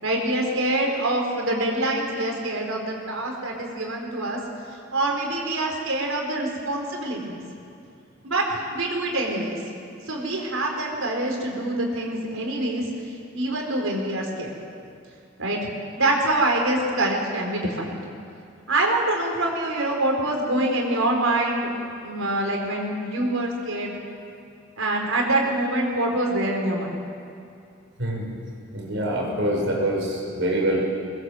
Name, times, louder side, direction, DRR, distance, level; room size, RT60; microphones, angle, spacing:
voice 1, 0.0-4.4 4.7-7.4 8.2-9.6 10.1-12.9 13.3-14.5 15.4-18.0 18.7-21.7 22.0-23.9 24.8-26.9, right 1 dB, 85° right, 1 dB, 4.4 m, -25 dB
voice 2, 28.0-28.3 28.7-30.9, right 1 dB, 65° right, -2 dB, 5.7 m, -25 dB
21.0 x 20.0 x 7.8 m, 2.4 s
head